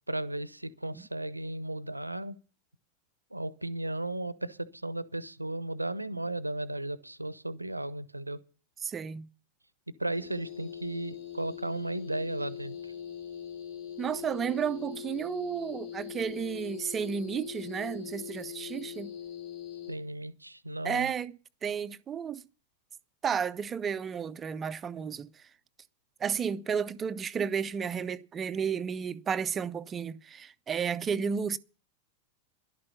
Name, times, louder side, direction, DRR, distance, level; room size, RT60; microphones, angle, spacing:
voice 1, 0.1-2.4 3.3-8.4 10.0-12.9 19.9-21.1, right 1 dB, 85° right, 0.8 m, -35 dB
voice 2, 8.8-9.3 14.0-19.1 20.8-21.4 21.6-22.4 23.2-25.5 26.2-31.6, right 7 dB, 20° right, 0.7 m, -32 dB
sound 1, 10.1-19.9, left 9 dB, 60° left, 4.9 m, -42 dB
13.0 x 11.5 x 5.6 m
figure-of-eight pair, 90°, 0 cm